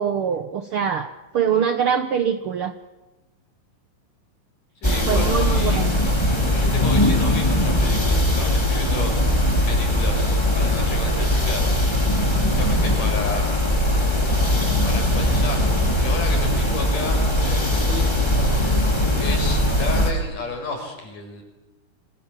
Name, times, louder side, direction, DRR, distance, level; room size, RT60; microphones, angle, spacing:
voice 1, 0.0-2.7 5.1-6.0, right 7 dB, 75° right, 9 dB, 1.2 m, -23 dB
voice 2, 4.8-5.9 6.5-9.1 9.7-11.6 12.4-13.5 14.8-18.1 19.2-21.4, left 3 dB, 65° left, 4 dB, 7.1 m, -32 dB
sound 1, 4.8-20.1, left 1 dB, 5° left, 3.9 m, -20 dB
26.5 x 26.0 x 7.5 m, 1.1 s
omnidirectional pair, 4.0 m